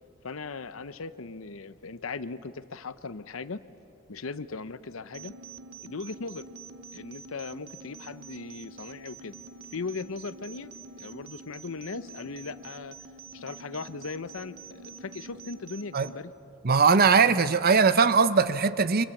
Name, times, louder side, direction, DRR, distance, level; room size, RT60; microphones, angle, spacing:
voice 1, 0.2-3.6 4.1-5.3 5.8-6.5 6.9-9.4 9.7-10.7 11.0-13.0 13.3-16.3, left 4 dB, 80° left, 13 dB, 0.8 m, -38 dB
sound 1, 5.1-16.2, right 4 dB, 80° right, 0.9 m, -47 dB
voice 2, 16.6-19.0, right 5 dB, 50° right, 14 dB, 0.7 m, -20 dB
30.0 x 24.5 x 7.2 m, 2.9 s
head